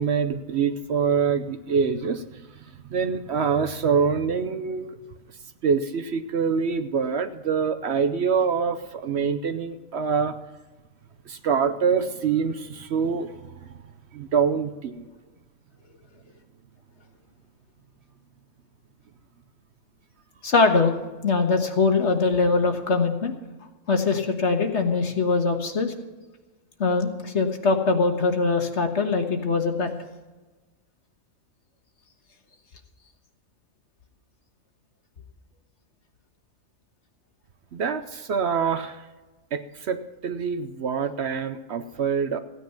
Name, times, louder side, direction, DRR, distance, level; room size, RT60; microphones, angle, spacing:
voice 1, 0.0-5.0 5.6-10.4 11.3-13.7 14.1-15.1 37.7-39.1 39.5-42.4, right 6 dB, 60° right, 10 dB, 0.9 m, -25 dB
voice 2, 20.4-21.0 21.2-23.3 23.9-25.9 26.8-29.9, left 4 dB, 55° left, 5 dB, 1.6 m, -22 dB
15.5 x 9.6 x 5.9 m, 1.2 s
omnidirectional pair, 1.4 m